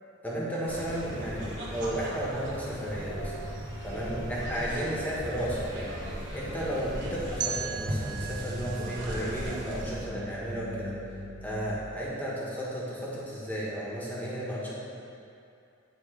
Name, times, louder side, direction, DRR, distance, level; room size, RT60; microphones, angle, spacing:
voice 1, 0.2-3.3 3.8-5.9 6.3-10.9 11.4-14.7, equal, 10° left, -6 dB, 1.3 m, -33 dB
sound 1, 0.7-10.0, equal, 60° right, 1.3 m, -37 dB
sound 2, 3.1-11.7, equal, 80° left, 1.2 m, -45 dB
sound 3, 7.4-10.3, right 7 dB, 20° right, 0.3 m, -38 dB
8.9 x 3.6 x 5.0 m, 2.6 s
head